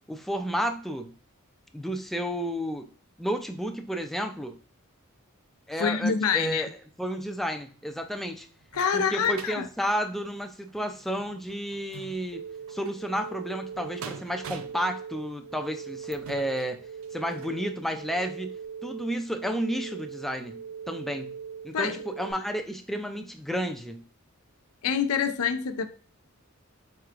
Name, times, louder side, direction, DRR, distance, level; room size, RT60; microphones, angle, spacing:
voice 1, 0.1-1.1 1.7-2.9 3.2-4.6 5.7-6.7 7.0-8.5 8.9-16.8 17.1-18.6 18.8-20.6 20.9-21.3 21.6-24.0, equal, ahead, 0.4 m, -31 dB
voice 2, 5.8-6.7 8.7-9.7 21.7-22.0 24.8-25.9, left 6 dB, 90° left, 0.5 m, -26 dB
sound 1, 7.8-17.6 18.2-18.3 18.6-18.7, right 5 dB, 70° right, 0.5 m, -47 dB
sound 2, 12.3-22.3, right 6 dB, 45° right, 1.2 m, -41 dB
4.5 x 4.5 x 2.4 m
head